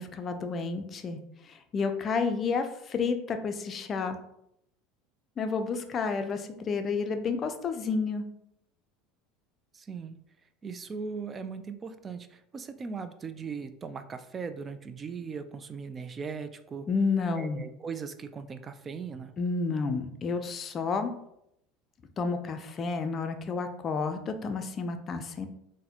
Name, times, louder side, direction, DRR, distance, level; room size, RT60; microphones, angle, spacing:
voice 1, 0.0-4.2 5.4-8.3 16.9-17.7 19.4-21.1 22.2-25.5, left 4 dB, 35° left, 7 dB, 0.4 m, -30 dB
voice 2, 9.7-10.2 10.6-16.9 17.4-19.3, right 5 dB, 30° right, 10 dB, 0.3 m, -39 dB
4.0 x 2.1 x 2.8 m, 0.78 s
supercardioid pair, 100°, 0 cm